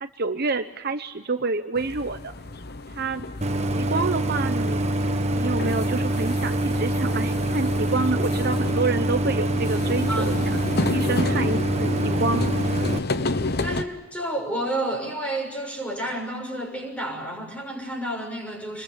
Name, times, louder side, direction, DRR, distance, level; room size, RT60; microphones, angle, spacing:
voice 1, 0.0-2.3 3.0-3.3 3.8-4.9 5.3-10.6 10.9-12.5, right 3 dB, 45° right, 8 dB, 0.9 m, -28 dB
sound 1, 1.8-13.8, left 2 dB, 45° left, 1.1 m, -31 dB
Idling, 3.4-13.0, right 1 dB, 30° right, 1.2 m, -25 dB
voice 2, 13.6-18.8, right 1 dB, 5° left, 3 dB, 6.5 m, -30 dB
27.5 x 22.0 x 8.3 m, 1.1 s
head